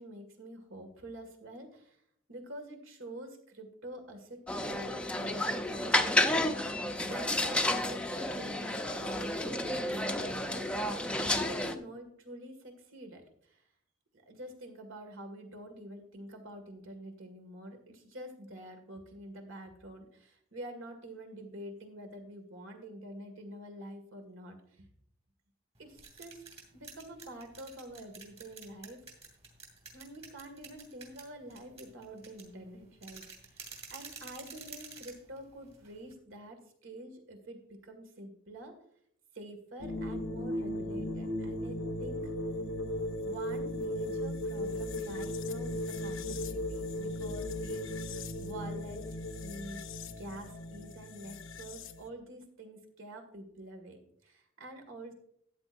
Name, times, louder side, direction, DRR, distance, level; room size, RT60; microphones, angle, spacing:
voice 1, 0.0-2.0 2.3-6.3 7.0-13.6 14.3-24.9 25.8-26.4 26.7-29.1 29.9-38.8 39.3-42.3 43.2-49.8 50.2-55.1, right 1 dB, 70° right, 5 dB, 2.1 m, -47 dB
sound 1, 4.5-11.7, left 1 dB, 5° left, 0.6 m, -31 dB
sound 2, 25.8-36.1, right 5 dB, 30° right, 2.5 m, -50 dB
sound 3, 39.8-52.1, left 1 dB, 70° left, 0.8 m, -37 dB
13.5 x 9.0 x 2.6 m, 0.69 s
head